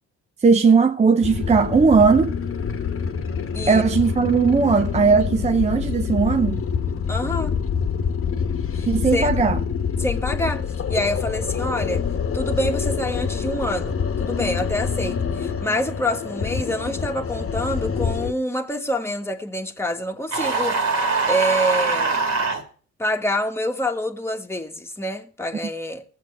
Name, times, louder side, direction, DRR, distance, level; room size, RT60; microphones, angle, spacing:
voice 1, 0.4-2.4 3.7-6.6 8.9-9.6, right 5 dB, 20° right, 0.6 m, -18 dB
sound 1, 1.2-18.3, left 6 dB, 45° left, 1.2 m, -26 dB
voice 2, 7.1-7.6 8.7-8.9 9.1-9.4 10.0-12.0 12.3-22.2 23.0-26.0, equal, 10° left, 1.4 m, -27 dB
sound 2, 20.3-22.6, right 4 dB, 65° right, 2.5 m, -22 dB
19.0 x 7.7 x 4.5 m
cardioid pair, 90°, 30 cm